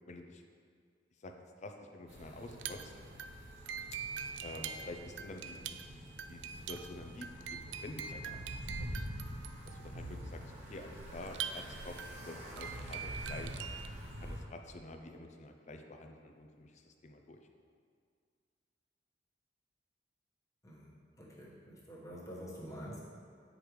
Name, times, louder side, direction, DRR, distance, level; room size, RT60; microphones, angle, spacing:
voice 1, 0.1-0.4 1.2-1.3 1.6-2.9 4.4-6.0 6.3-8.4 8.8-9.0 9.7-10.4 10.7-11.9 12.2-13.6 14.2-17.4, left 2 dB, 40° left, 4 dB, 0.5 m, -48 dB
sound 1, 2.1-14.4, equal, 35° right, 1.2 m, -46 dB
sound 2, 2.5-14.0, right 7 dB, 70° right, 0.3 m, -44 dB
voice 2, 20.6-23.1, equal, 20° left, -5 dB, 1.2 m, -47 dB
8.2 x 5.1 x 3.1 m, 2.1 s
head